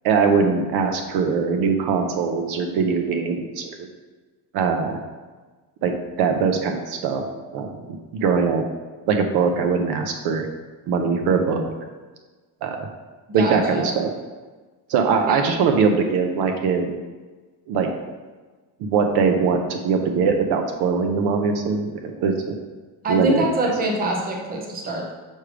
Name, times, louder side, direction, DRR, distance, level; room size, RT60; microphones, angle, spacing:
voice 1, 0.0-3.9 4.5-5.0 5.8-7.2 7.5-8.6 9.0-10.5 10.9-11.7 12.6-12.9 13.3-14.1 14.9-17.0 17.7-17.9 18.8-22.5 23.1-23.7, right 5 dB, 65° right, 5 dB, 0.7 m, -21 dB
voice 2, 13.3-13.9 15.3-15.4 23.0-25.1, right 1 dB, 20° right, 1 dB, 0.7 m, -25 dB
6.3 x 3.3 x 4.9 m, 1.3 s
cardioid pair, 170°, 41 cm